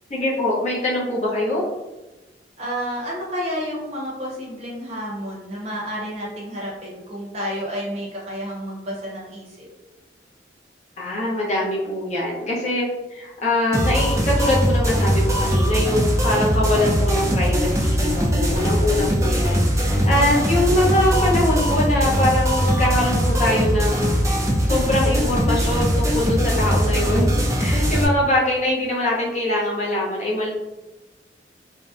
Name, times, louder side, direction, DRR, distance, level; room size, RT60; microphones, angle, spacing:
voice 1, 0.1-1.6 11.0-12.9 13.1-24.1 24.6-30.5, left 1 dB, 40° left, -4 dB, 0.6 m, -23 dB
voice 2, 2.6-9.7 18.6-18.7, equal, 40° right, -4 dB, 0.7 m, -30 dB
sound 1, 13.7-28.0, equal, 15° right, 0.3 m, -20 dB
2.6 x 2.0 x 2.3 m, 1.1 s
head